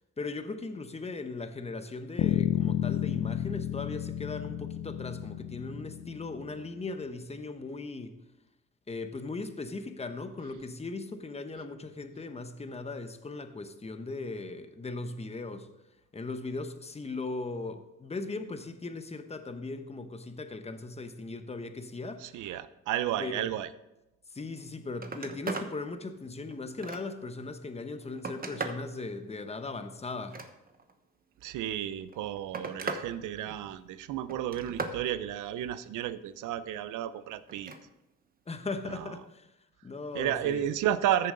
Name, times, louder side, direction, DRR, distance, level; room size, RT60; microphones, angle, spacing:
voice 1, 0.2-8.2 8.9-15.7 16.1-22.5 23.2-23.4 24.3-30.4 38.5-39.5 39.8-40.7, left 3 dB, 20° left, 1.0 m, -38 dB
Bass guitar, 2.2-6.6, left 12 dB, 75° left, 0.6 m, -31 dB
voice 2, 22.2-23.7 31.4-37.7 38.9-39.1 40.1-41.3, right 11 dB, 85° right, 0.6 m, -32 dB
Telephone, 24.5-24.6 24.9-25.7 26.2-27.3 27.9-28.9 30.1-30.9 31.9-33.1 33.4-33.9 34.3-35.0 37.5-37.8 39.2-39.3, right 4 dB, 30° right, 1.1 m, -38 dB
14.0 x 6.8 x 3.8 m
cardioid pair, 90°, 30 cm